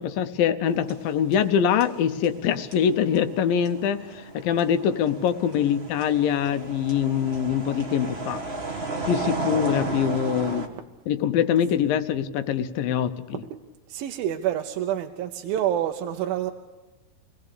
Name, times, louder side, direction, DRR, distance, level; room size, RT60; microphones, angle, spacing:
voice 1, 0.0-8.4 9.1-10.7 11.1-13.4, left 8 dB, 80° left, 10 dB, 2.6 m, -24 dB
sound 1, 0.7-10.7, right 3 dB, 45° right, 0.7 m, -34 dB
voice 2, 13.9-16.5, right 11 dB, 85° right, 5 dB, 2.7 m, -28 dB
27.5 x 18.0 x 6.8 m, 1.1 s
omnidirectional pair, 4.1 m